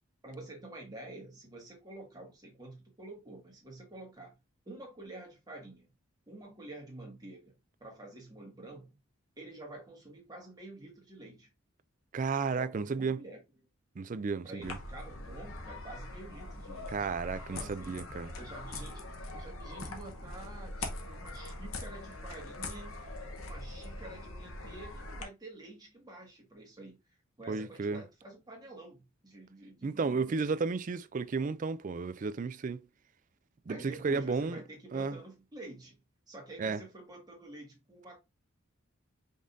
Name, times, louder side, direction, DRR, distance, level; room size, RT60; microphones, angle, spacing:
voice 1, 0.2-4.3 4.7-5.9 6.3-7.5 7.8-8.9 9.4-11.5 12.5-13.4 14.4-17.1 17.5-18.0 18.4-23.0 23.4-27.0 27.4-30.4 33.7-36.0 36.3-38.2, right 2 dB, 20° right, 1.8 m, -48 dB
voice 2, 12.1-13.2 14.0-14.8 16.9-18.3 27.5-28.0 29.8-32.8 33.7-34.6 34.9-35.2 36.6-36.8, right 4 dB, 40° right, 0.4 m, -33 dB
sound 1, 14.6-25.2, left 2 dB, 90° left, 1.1 m, -42 dB
5.3 x 3.8 x 2.6 m
head